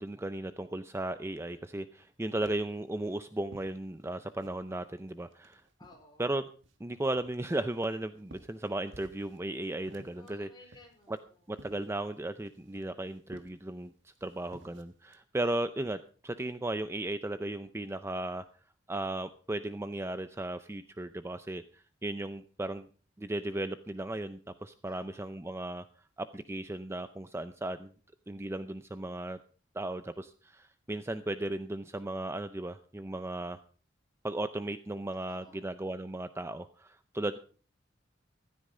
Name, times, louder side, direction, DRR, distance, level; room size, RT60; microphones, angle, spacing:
voice 1, 0.0-5.6 6.2-6.4 6.8-10.5 11.1-11.2 11.5-18.4 18.9-22.9 23.2-25.9 26.2-27.9 28.3-29.4 29.7-33.6 34.2-37.4, right 1 dB, 15° right, 11 dB, 0.5 m, -36 dB
sound 1, 2.0-4.7 5.1-6.2 6.6-9.5 9.7-15.2, right 1 dB, 75° right, 1.6 m, -56 dB
voice 2, 5.8-6.3 10.1-11.4 24.8-25.4 35.3-35.7, left 2 dB, 25° left, 2 dB, 4.6 m, -57 dB
15.5 x 13.0 x 3.8 m, 0.39 s
head